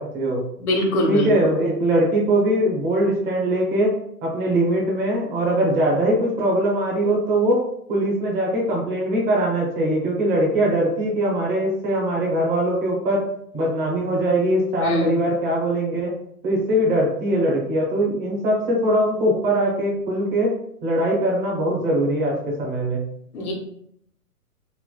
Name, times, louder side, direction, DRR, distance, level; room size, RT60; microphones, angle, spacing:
voice 1, 0.0-0.4 1.1-3.9 4.2-7.6 7.9-13.2 13.5-16.1 16.4-20.5 20.8-23.0, right 1 dB, 15° right, -3 dB, 0.6 m, -21 dB
voice 2, 0.6-1.3 14.8-15.2 23.3-23.5, left 1 dB, 70° left, 1 dB, 1.2 m, -22 dB
3.2 x 2.9 x 2.2 m, 0.69 s
hypercardioid pair, 140°, 45 cm